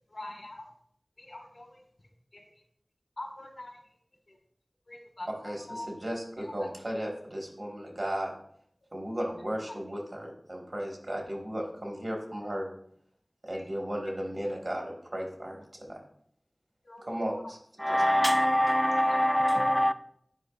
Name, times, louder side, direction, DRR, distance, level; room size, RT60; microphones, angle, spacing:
voice 1, 0.1-0.7 1.2-1.8 2.3-2.4 3.2-3.8 4.3-4.4 4.9-5.9 6.4-6.7 13.5-13.6 14.0-14.1 16.8-17.1 19.1-19.2, left 1 dB, 75° left, 1.6 m, -43 dB
voice 2, 5.3-8.3 8.9-12.7 13.4-16.0 17.1-17.6 17.9-18.0, equal, 60° right, 1.6 m, -35 dB
voice 3, 17.8-19.9, equal, 10° left, 0.4 m, -24 dB
10.0 x 4.8 x 2.4 m
wide cardioid pair, 40°, 0 cm